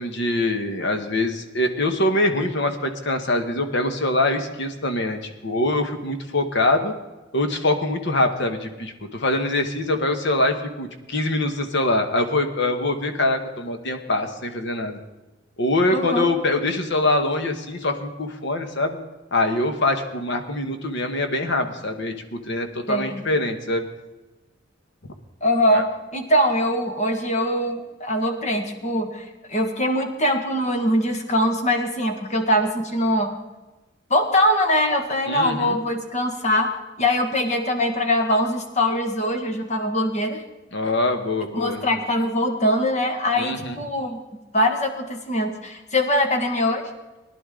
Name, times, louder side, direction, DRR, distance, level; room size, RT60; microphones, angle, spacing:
voice 1, 0.0-6.9 7.3-15.0 15.6-19.0 19.3-22.1 22.5-23.8 25.7-25.8 35.3-35.8 40.7-41.8 43.4-43.8, left 2 dB, 65° left, 6 dB, 1.3 m, -24 dB
voice 2, 15.9-16.3 22.9-23.2 25.4-33.4 34.1-36.7 37.0-40.4 41.5-44.2 44.5-46.9, left 1 dB, 35° left, 4 dB, 1.6 m, -22 dB
19.0 x 11.0 x 3.8 m, 1.1 s
head